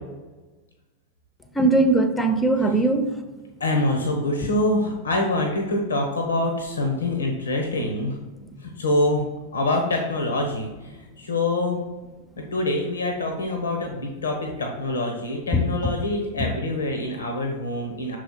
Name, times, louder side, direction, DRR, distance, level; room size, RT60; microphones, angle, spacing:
voice 1, 1.5-3.2 15.5-15.9, right 2 dB, 10° left, 8 dB, 0.8 m, -20 dB
voice 2, 3.6-8.2 8.6-9.2 9.5-11.8 12.4-18.2, left 2 dB, 70° left, 2 dB, 1.0 m, -25 dB
6.4 x 5.0 x 4.0 m, 1.2 s
figure-of-eight pair, 90°, 0 cm